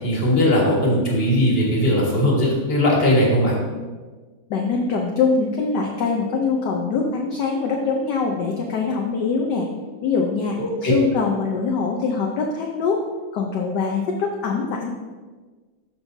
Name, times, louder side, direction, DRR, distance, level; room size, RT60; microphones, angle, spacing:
voice 1, 0.0-3.6 10.6-10.9, left 1 dB, 30° left, -3 dB, 1.8 m, -19 dB
voice 2, 4.5-9.7 10.0-13.0 13.3-14.9, left 4 dB, 65° left, 0 dB, 1.2 m, -23 dB
13.0 x 5.5 x 2.7 m, 1.4 s
omnidirectional pair, 2.3 m